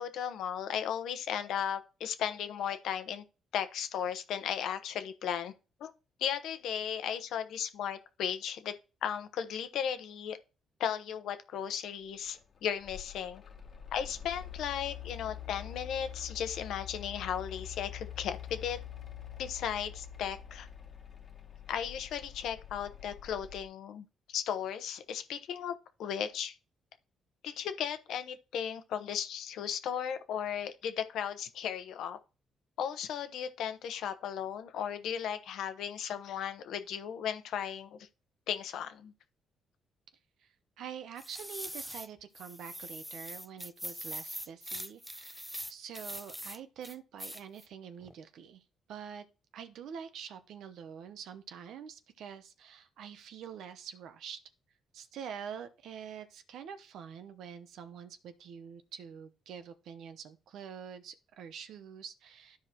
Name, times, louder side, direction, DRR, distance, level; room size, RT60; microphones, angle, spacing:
voice 1, 0.0-3.2 3.5-5.5 5.8-5.9 6.2-10.4 10.8-13.4 13.9-18.8 19.4-20.7 21.7-25.7 26.0-26.6 27.4-32.2 32.8-38.1 38.5-39.1, left 8 dB, 80° left, 0.9 m, -36 dB
Mechanical fan, 12.3-23.6, left 10 dB, 45° left, 1.2 m, -45 dB
voice 2, 40.4-45.4 45.7-49.2 49.5-54.4 54.9-62.6, right 7 dB, 80° right, 0.8 m, -46 dB
sound 1, 41.2-42.1 42.3-46.6 46.8-47.7 48.0-48.1, equal, 5° right, 0.5 m, -42 dB
13.0 x 4.8 x 2.9 m
cardioid pair, 90°, 0 cm